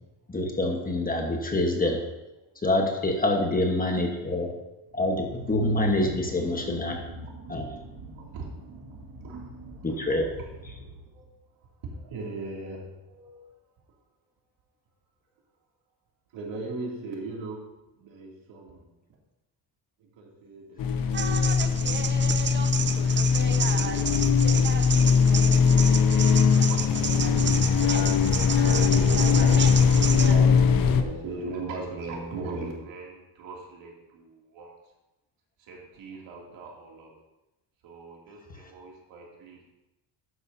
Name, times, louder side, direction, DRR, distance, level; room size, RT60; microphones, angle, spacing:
voice 1, 0.3-2.0 2.6-4.5 4.9-7.0 7.5-7.7 9.8-10.2 29.4-29.5, left 1 dB, 20° left, 2 dB, 1.3 m, -26 dB
sound 1, 4.9-11.4, equal, 50° right, 2.0 m, -44 dB
voice 2, 7.2-7.5 8.1-8.5 9.2-9.9 10.8-11.2 11.5-13.5 16.3-17.7 18.0-18.9 20.0-21.5 22.4-23.0 23.5-34.7 35.6-37.1 37.8-39.6, right 3 dB, 85° right, -2 dB, 2.8 m, -40 dB
sound 2, 20.8-31.0, left 6 dB, 50° left, 0.8 m, -21 dB
sound 3, 21.1-30.3, right 6 dB, 25° right, 0.5 m, -32 dB
12.5 x 9.5 x 2.8 m, 0.97 s
cardioid pair, 145°, 45 cm